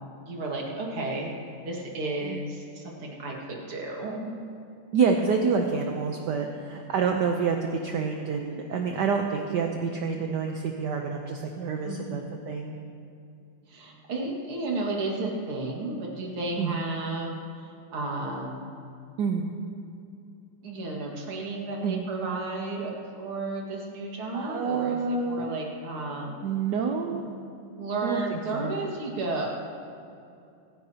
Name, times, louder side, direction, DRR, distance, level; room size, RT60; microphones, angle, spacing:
voice 1, 0.3-4.3 11.8-12.2 13.7-18.7 20.6-26.4 27.6-29.5, right 2 dB, 85° right, -1 dB, 2.8 m, -33 dB
voice 2, 4.9-12.7 16.6-16.7 19.2-19.5 21.8-22.1 24.3-25.6 26.4-27.3 28.0-28.7, right 5 dB, 65° right, 3 dB, 1.2 m, -28 dB
26.5 x 10.5 x 2.9 m, 2.6 s
omnidirectional pair, 2.3 m